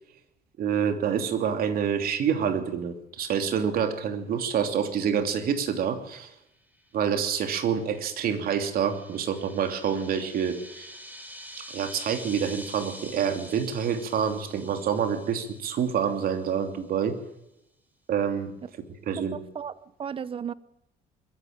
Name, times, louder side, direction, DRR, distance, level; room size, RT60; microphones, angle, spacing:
voice 1, 0.6-6.3 6.9-10.9 11.7-17.2 18.1-18.5 19.1-19.4, right 7 dB, 60° right, 3.0 m, -27 dB
sound 1, 6.8-16.6, equal, 10° right, 4.4 m, -46 dB
voice 2, 19.2-20.5, right 7 dB, 30° right, 0.9 m, -35 dB
21.5 x 14.5 x 8.8 m
cardioid pair, 110°, 17 cm